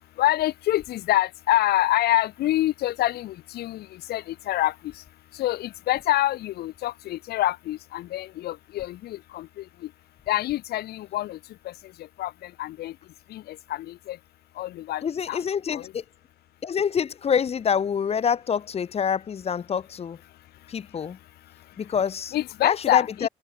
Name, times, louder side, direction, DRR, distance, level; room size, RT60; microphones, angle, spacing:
voice 1, 0.2-5.0 5.3-9.9 10.3-11.4 11.6-13.0 13.3-14.2 14.6-15.4 15.7-15.9 22.3-23.3, left 15 dB, 70° left, 1.2 m, -26 dB
voice 2, 15.0-16.0 16.6-20.2 20.7-21.2 21.8-22.3 22.6-23.3, left 7 dB, 35° left, 1.4 m, -26 dB
cardioid pair, 110°, 17 cm